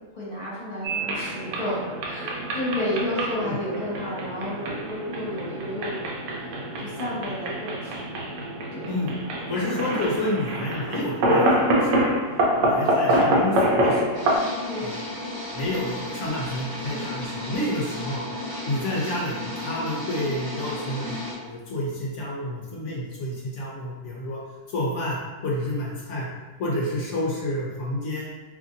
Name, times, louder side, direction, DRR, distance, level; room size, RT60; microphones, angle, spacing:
voice 1, 0.1-8.1 8.7-8.9 12.5-12.8 14.7-14.9, left 1 dB, 30° left, -8 dB, 1.2 m, -32 dB
sound 1, 0.8-14.4, right 1 dB, 90° right, 1.2 m, -26 dB
voice 2, 9.5-12.1 12.6-14.0 14.8-14.9 15.5-18.2 18.7-24.4 24.7-25.2 25.4-26.3 26.6-28.3, left 1 dB, 65° left, -4 dB, 0.7 m, -29 dB
sound 2, 14.1-21.3, left 1 dB, 20° right, 0.6 m, -34 dB
2.9 x 2.6 x 2.5 m, 1.2 s
omnidirectional pair, 1.9 m